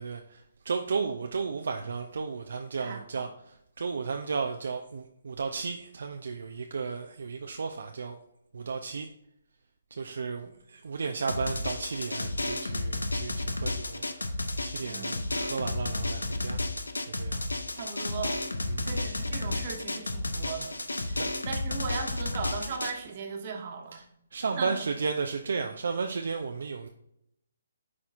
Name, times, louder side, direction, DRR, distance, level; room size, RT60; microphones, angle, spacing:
voice 1, 0.0-8.2 8.5-9.1 9.9-16.6 17.1-17.6 18.7-18.9 20.9-21.3 23.9-24.0 24.3-26.9, right 5 dB, 65° right, 4 dB, 0.5 m, -34 dB
voice 2, 2.8-3.2 14.8-15.1 17.8-18.3 18.8-20.8 21.1-24.0 24.6-24.8, right 5 dB, 40° right, 2 dB, 1.2 m, -37 dB
Drum, 11.3-22.9, left 2 dB, 90° left, 0.7 m, -32 dB
9.4 x 4.3 x 2.5 m, 0.77 s
figure-of-eight pair, 145°, 0 cm